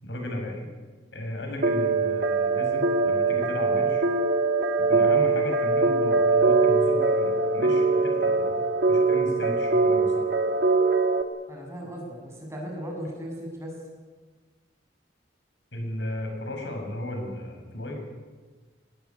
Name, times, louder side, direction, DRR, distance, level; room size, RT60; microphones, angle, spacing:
voice 1, 0.0-0.5 1.1-4.1 4.9-8.6 8.9-10.3 15.7-18.1, left 1 dB, 80° left, 3 dB, 7.4 m, -35 dB
sound 1, 1.6-11.2, right 3 dB, 60° right, 2.0 m, -22 dB
voice 2, 11.5-13.7, equal, 15° right, 0 dB, 7.4 m, -37 dB
23.5 x 19.5 x 9.8 m, 1.4 s
head